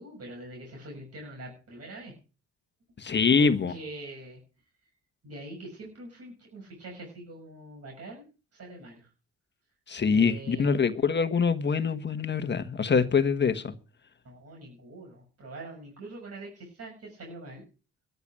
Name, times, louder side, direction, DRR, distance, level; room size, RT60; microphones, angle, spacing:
voice 1, 0.0-2.1 3.4-4.4 5.2-8.3 8.5-9.1 10.1-10.9 14.2-17.6, right 1 dB, 55° right, 6.5 m, -44 dB
voice 2, 3.0-3.7 9.9-13.7, left 5 dB, 35° left, 1.4 m, -24 dB
13.5 x 7.0 x 8.7 m
cardioid pair, 90°, 30 cm